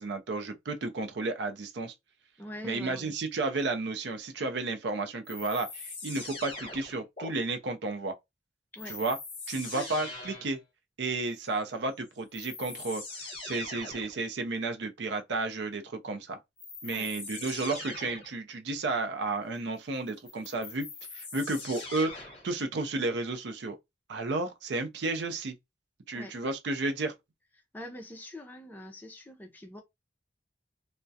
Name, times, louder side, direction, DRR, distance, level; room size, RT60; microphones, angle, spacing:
voice 1, 0.0-1.9 2.6-8.1 8.9-9.2 9.5-10.6 11.0-16.4 16.8-20.9 21.1-22.1 22.4-23.8 24.1-25.5 26.1-27.1, right 3 dB, 70° right, 0.5 m, -32 dB
voice 2, 2.4-3.1 8.7-9.0 9.7-9.9 16.9-17.1 26.1-26.3 27.7-29.8, left 1 dB, 10° left, 0.4 m, -43 dB
sound 1, 5.2-7.3 8.8-10.6 11.9-12.0 12.3-14.2 16.6-18.4 20.1-22.5, left 3 dB, 30° left, 0.9 m, -42 dB
2.3 x 2.1 x 2.6 m
head